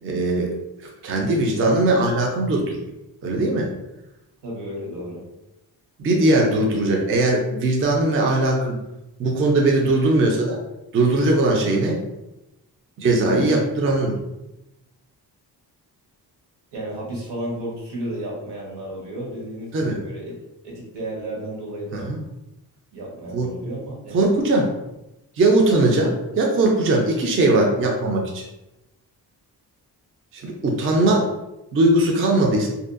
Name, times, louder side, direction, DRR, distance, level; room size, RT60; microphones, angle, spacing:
voice 1, 0.0-2.8 3.2-3.7 6.0-8.8 9.2-10.6 10.9-12.0 13.0-14.2 19.7-20.0 21.9-22.2 23.3-23.5 24.1-24.7 25.4-28.5 30.3-31.3 31.7-32.7, right 2 dB, 35° right, 0 dB, 0.4 m, -20 dB
voice 2, 4.4-5.2 13.2-14.0 16.7-20.3 20.6-22.1 22.9-24.2 30.9-31.2, right 1 dB, 75° right, -3 dB, 1.0 m, -33 dB
2.6 x 2.2 x 2.4 m, 0.93 s
wide cardioid pair, 125°, 41 cm